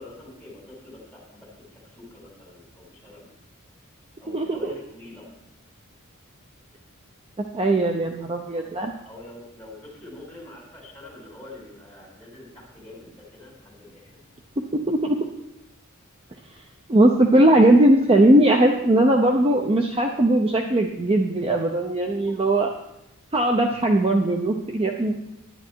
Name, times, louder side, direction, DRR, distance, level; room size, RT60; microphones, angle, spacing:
voice 1, 0.0-3.3 4.2-5.3 7.8-8.0 8.5-8.7 9.0-14.1 22.1-22.3, left 2 dB, 5° left, -5 dB, 4.7 m, -44 dB
voice 2, 4.3-4.7 7.5-8.9 14.7-15.2 16.9-22.7 23.3-25.1, right 1 dB, 25° right, 3 dB, 0.7 m, -19 dB
11.0 x 10.0 x 4.6 m, 0.87 s
head